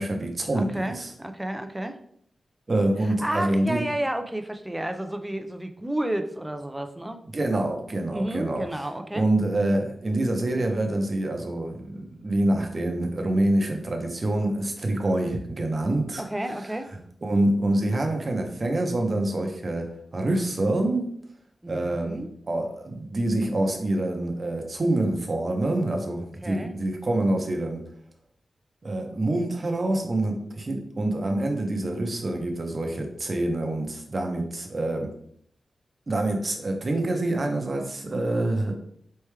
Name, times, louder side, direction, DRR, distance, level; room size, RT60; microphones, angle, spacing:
voice 1, 0.0-1.1 2.7-3.8 7.2-8.8 9.1-16.2 17.2-21.1 21.7-22.2 22.5-27.8 28.8-35.1 36.1-38.7, right 1 dB, 35° right, 3 dB, 0.7 m, -26 dB
voice 2, 0.5-2.0 3.2-7.2 8.1-9.3 16.2-16.9 21.6-22.3 26.4-26.7, right 1 dB, 10° right, 6 dB, 0.4 m, -31 dB
4.3 x 3.3 x 3.2 m, 0.67 s
wide cardioid pair, 135°, 0 cm